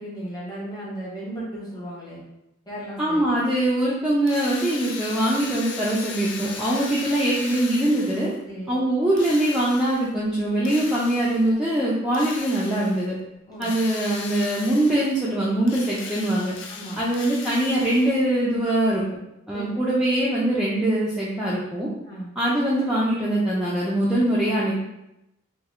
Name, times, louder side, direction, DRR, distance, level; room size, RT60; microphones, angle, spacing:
voice 1, 0.0-2.2 2.7-3.3 8.4-8.8 13.5-13.7 16.7-17.0 19.5-19.8 22.0-22.3, right 1 dB, 20° left, -6 dB, 0.9 m, -35 dB
voice 2, 3.0-8.3 8.7-13.1 13.6-16.5 17.0-19.0 19.5-21.9 22.4-24.8, right 1 dB, 5° right, -8 dB, 0.3 m, -22 dB
Drill, 4.3-8.4 9.2-10.1 10.7-11.5 12.1-13.1 13.6-15.3 15.6-18.3, left 5 dB, 65° left, 0.4 m, -38 dB
2.8 x 2.2 x 3.5 m, 0.88 s
head